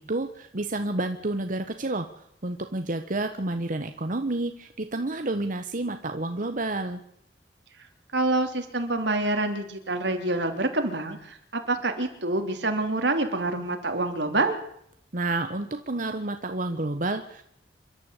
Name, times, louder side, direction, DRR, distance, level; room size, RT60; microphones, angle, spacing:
voice 1, 0.0-2.1 2.4-7.0 15.1-17.4, right 2 dB, 50° right, 7 dB, 1.2 m, -30 dB
voice 2, 8.1-14.5, right 2 dB, 85° right, 5 dB, 3.2 m, -27 dB
27.5 x 12.0 x 8.2 m, 0.72 s
head